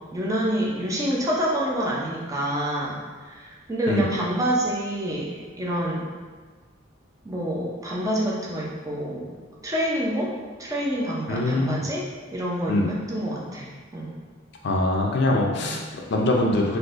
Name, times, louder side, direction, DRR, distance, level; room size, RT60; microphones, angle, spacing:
voice 1, 0.1-3.0 3.3-6.0 7.2-9.3 9.6-10.3 10.6-14.1 15.3-15.8, right 1 dB, 15° right, -4 dB, 0.5 m, -27 dB
voice 2, 11.3-11.8 12.7-12.9 14.6-16.8, left 1 dB, 55° left, 0 dB, 0.5 m, -23 dB
3.8 x 2.6 x 2.5 m, 1.5 s
head